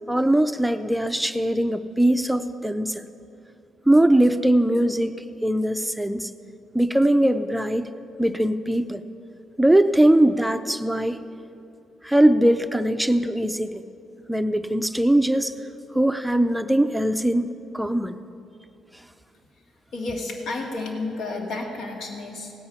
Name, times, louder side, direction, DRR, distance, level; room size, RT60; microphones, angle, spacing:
voice 1, 0.1-3.0 3.9-5.1 5.4-6.3 6.7-7.9 8.2-9.0 9.6-11.2 12.0-13.8 14.3-15.5 15.9-18.2, right 1 dB, 5° right, 9 dB, 0.5 m, -21 dB
voice 2, 19.9-22.5, left 3 dB, 75° left, 1 dB, 1.9 m, -31 dB
17.5 x 8.6 x 5.7 m, 2.7 s
cardioid pair, 90°, 0 cm